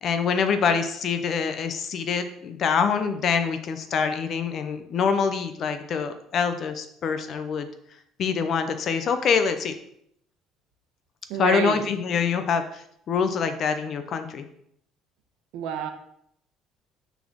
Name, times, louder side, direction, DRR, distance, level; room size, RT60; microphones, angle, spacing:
voice 1, 0.0-7.7 8.2-9.7 11.4-14.4, left 6 dB, 40° left, 9 dB, 0.6 m, -25 dB
voice 2, 11.3-11.9 15.5-15.9, right 8 dB, 75° right, 6 dB, 1.1 m, -28 dB
6.7 x 4.1 x 6.2 m, 0.72 s
cardioid pair, 165°, 0 cm